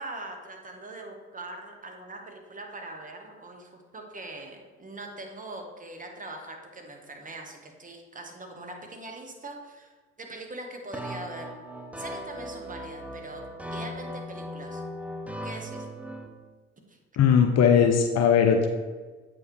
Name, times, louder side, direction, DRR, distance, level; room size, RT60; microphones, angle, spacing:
voice 1, 0.0-11.5 12.0-13.4 13.7-14.8 15.4-15.9 16.9-17.0, right 2 dB, 25° right, 3 dB, 1.4 m, -42 dB
sound 1, 10.9-16.3, equal, 5° right, 0.8 m, -38 dB
voice 2, 17.2-18.7, left 7 dB, 50° left, 5 dB, 0.7 m, -19 dB
8.0 x 5.3 x 3.2 m, 1.4 s
hypercardioid pair, 60°, 32 cm